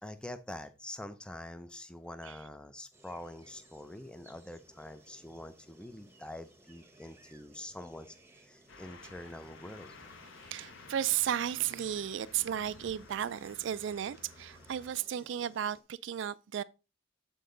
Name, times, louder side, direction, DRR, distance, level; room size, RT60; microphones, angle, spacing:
voice 1, 0.0-10.1, left 1 dB, 5° left, 0.5 m, -45 dB
sound 1, 2.9-15.8, right 1 dB, 10° right, 1.0 m, -61 dB
sound 2, 8.7-14.9, left 3 dB, 70° left, 1.0 m, -53 dB
voice 2, 10.4-16.6, right 10 dB, 60° right, 0.3 m, -34 dB
8.5 x 4.6 x 3.8 m
head